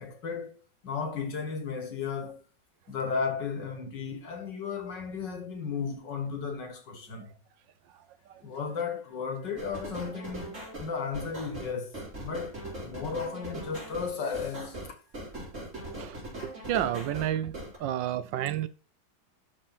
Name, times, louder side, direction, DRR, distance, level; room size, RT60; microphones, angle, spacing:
voice 1, 0.0-2.4 2.9-7.3 8.4-15.0, left 5 dB, 70° left, 2.4 m, -35 dB
sound 1, 9.6-17.8, right 1 dB, 40° right, 4.7 m, -40 dB
voice 2, 16.0-17.5 17.8-18.7, right 11 dB, 80° right, 1.4 m, -30 dB
12.5 x 4.4 x 4.3 m
omnidirectional pair, 2.0 m